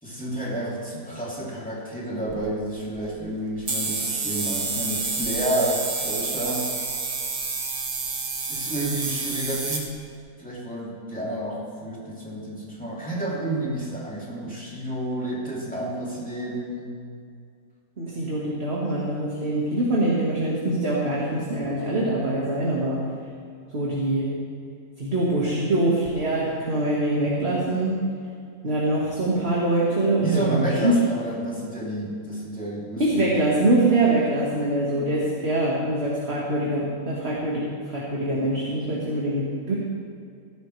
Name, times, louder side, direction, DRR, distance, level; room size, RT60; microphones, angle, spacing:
voice 1, 0.0-6.7 8.5-10.0 10.4-16.9 30.2-33.3, right 1 dB, 5° left, -6 dB, 2.8 m, -30 dB
sound 1, 2.3-2.5 2.8-3.1 3.7-9.9, right 4 dB, 85° right, 1.9 m, -29 dB
voice 2, 18.0-23.0 23.7-24.3 25.0-28.0 28.6-31.0 33.0-39.7, right 1 dB, 45° right, -5 dB, 2.0 m, -24 dB
16.0 x 13.5 x 3.3 m, 2.3 s
omnidirectional pair, 1.5 m